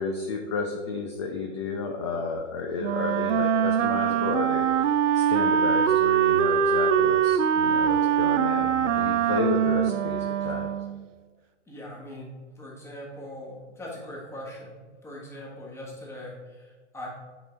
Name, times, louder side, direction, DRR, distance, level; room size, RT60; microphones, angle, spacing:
voice 1, 0.0-10.7, left 4 dB, 25° left, 2 dB, 0.4 m, -32 dB
Wind instrument woodwind instrument, 2.8-11.1, right 8 dB, 85° right, 0.5 m, -23 dB
voice 2, 11.7-12.3 12.6-17.1, left 1 dB, 5° left, -4 dB, 1.4 m, -41 dB
8.5 x 4.6 x 3.3 m, 1.4 s
hypercardioid pair, 140°, 37 cm